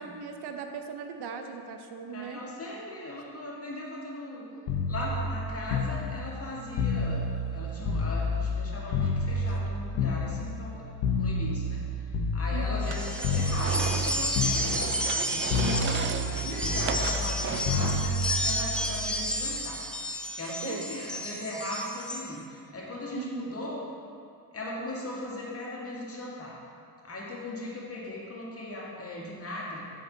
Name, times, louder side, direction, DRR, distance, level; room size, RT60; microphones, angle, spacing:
voice 1, 0.0-2.4 9.4-9.6 12.5-12.8 20.6-20.9 23.1-23.6, right 6 dB, 50° right, 5 dB, 0.9 m, -38 dB
voice 2, 2.1-4.4 4.9-14.8 15.3-19.8 20.3-23.9 24.5-26.6 27.0-29.8, left 1 dB, 30° left, -4 dB, 2.0 m, -38 dB
sound 1, 4.7-8.6 8.9-12.9 13.2-14.1 14.3-15.2 15.5-19.5 20.7-20.9, left 3 dB, 65° left, 1.3 m, -29 dB
sound 2, 12.8-22.3, equal, ahead, 0.8 m, -32 dB
sound 3, 12.8-18.2, right 7 dB, 25° right, 0.4 m, -35 dB
8.0 x 6.9 x 3.9 m, 2.4 s
hypercardioid pair, 65°, 49 cm